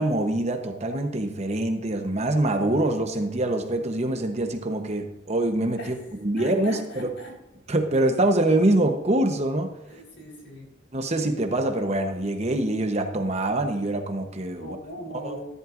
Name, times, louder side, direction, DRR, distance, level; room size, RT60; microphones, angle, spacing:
voice 1, 0.0-6.0 6.2-7.1 7.7-9.7 10.9-14.8 15.2-15.4, right 1 dB, 35° right, 5 dB, 1.0 m, -24 dB
voice 2, 6.4-7.3 9.9-10.7 14.6-15.5, equal, 80° left, -2 dB, 4.5 m, -40 dB
14.0 x 11.0 x 2.6 m, 0.87 s
head